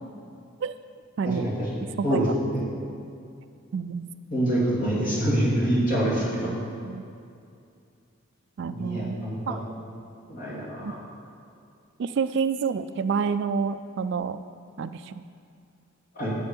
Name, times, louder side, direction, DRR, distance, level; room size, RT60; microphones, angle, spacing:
voice 1, 1.2-1.5 2.0-2.2 3.7-4.1 6.4-6.6 6.8-7.0 8.6-9.6 10.8-10.9 12.0-14.4 14.8-15.1, right 5 dB, 55° right, 12 dB, 0.3 m, -28 dB
voice 2, 4.3-6.5 8.7-9.5 10.3-11.0 16.2-16.3, right 1 dB, 40° left, -6 dB, 2.6 m, -25 dB
9.8 x 7.8 x 5.3 m, 2.4 s
head